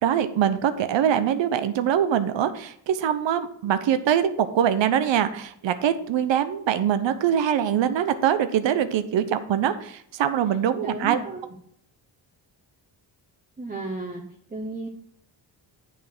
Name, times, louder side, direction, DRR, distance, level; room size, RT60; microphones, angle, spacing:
voice 1, 0.0-11.2, right 9 dB, 75° right, 11 dB, 0.9 m, -23 dB
voice 2, 10.8-11.5 13.6-14.2 14.5-14.9, right 2 dB, 20° right, 0 dB, 1.1 m, -33 dB
7.6 x 5.4 x 6.0 m, 0.67 s
cardioid pair, 90°, 45 cm